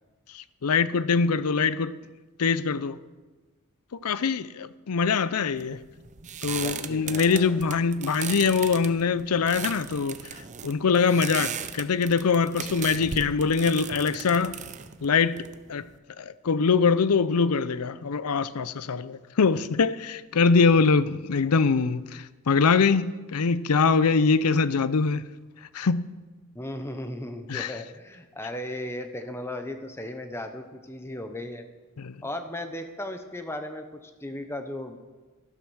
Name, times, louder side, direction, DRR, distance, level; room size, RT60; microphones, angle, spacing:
voice 1, 0.3-1.9 2.4-3.0 3.9-5.8 6.4-14.6 15.0-15.8 16.2-25.2 25.7-26.0 27.5-27.7 32.0-32.2, left 5 dB, 90° left, 0.6 m, -23 dB
sound 1, 5.6-16.0, right 8 dB, 35° right, 0.6 m, -37 dB
voice 2, 6.6-7.6 19.5-19.6 26.5-31.6 32.2-35.0, left 1 dB, 10° left, 0.8 m, -36 dB
12.0 x 12.0 x 6.2 m
head